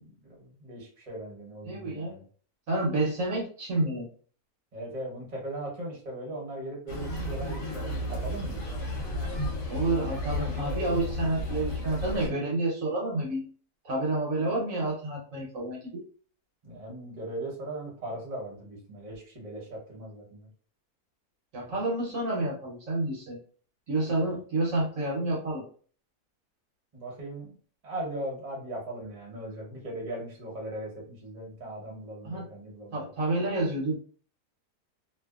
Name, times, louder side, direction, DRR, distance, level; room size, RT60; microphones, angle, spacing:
voice 1, 0.0-2.2 4.7-8.6 16.6-20.5 24.2-24.3 26.9-33.0, right 1 dB, 30° right, -2 dB, 0.9 m, -39 dB
voice 2, 1.7-2.2 2.7-4.1 9.6-13.5 13.8-16.0 21.5-23.4 23.9-25.6 32.2-32.4 32.9-34.0, right 2 dB, 65° right, -3 dB, 1.1 m, -29 dB
sound 1, 6.9-12.3, left 1 dB, 55° left, 1.1 m, -33 dB
2.6 x 2.4 x 2.3 m, 0.43 s
omnidirectional pair, 1.7 m